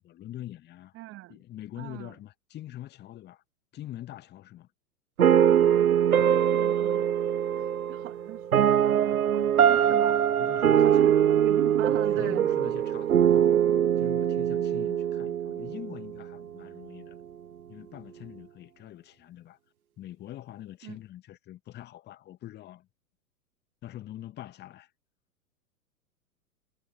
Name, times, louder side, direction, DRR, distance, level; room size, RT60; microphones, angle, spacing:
voice 1, 0.0-0.9 1.3-3.4 3.7-4.7 9.9-10.0 10.4-11.2 11.9-13.6 14.0-17.2 17.7-19.6 20.0-22.9 23.8-24.9, left 13 dB, 20° left, 2.1 m, -44 dB
voice 2, 0.9-1.4 1.7-2.2 6.5-7.1 7.5-9.0 9.3-10.2 10.7-12.4 20.8-21.0, right 18 dB, 30° right, 2.8 m, -39 dB
sound 1, 5.2-16.3, right 9 dB, 65° right, 1.0 m, -23 dB
figure-of-eight pair, 105°, 46 cm